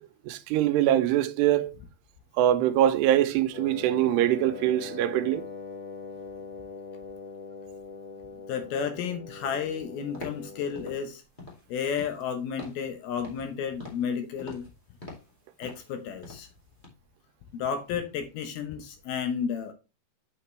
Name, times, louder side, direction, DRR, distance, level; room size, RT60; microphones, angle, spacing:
voice 1, 0.3-1.7 2.4-5.4, right 12 dB, 90° right, 2.8 m, -23 dB
Wind instrument woodwind instrument, 3.5-11.1, left 4 dB, 55° left, 3.3 m, -42 dB
voice 2, 8.5-11.2 11.7-14.6 15.6-16.5 17.5-19.7, left 7 dB, 75° left, 2.7 m, -32 dB
Footsteps Tile Male Tennis Shoes Slow Pace, 10.1-10.5 10.7-11.0 11.4-11.7 12.0-12.3 12.6-12.9 13.2-13.5 13.8-14.1 14.4-14.7 15.0-15.3 15.6-15.9 16.2-16.5 16.8-16.9, left 2 dB, 30° left, 0.9 m, -44 dB
8.0 x 5.8 x 3.2 m
omnidirectional pair, 4.7 m